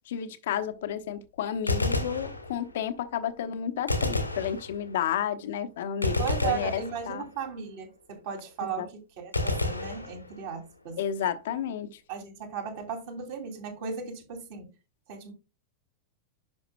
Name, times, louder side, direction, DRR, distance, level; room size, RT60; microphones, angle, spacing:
voice 1, 0.1-7.2 8.6-8.9 11.0-11.9, left 9 dB, 55° left, 0.8 m, -31 dB
Gunshot gunfire, 1.5-2.9 3.9-5.1 6.0-7.4 9.3-10.7, left 2 dB, 85° left, 1.4 m, -30 dB
voice 2, 6.2-11.0 12.1-14.7 15.1-15.3, right 6 dB, 50° right, 2.7 m, -36 dB
10.5 x 5.8 x 2.2 m
figure-of-eight pair, 90°, 0 cm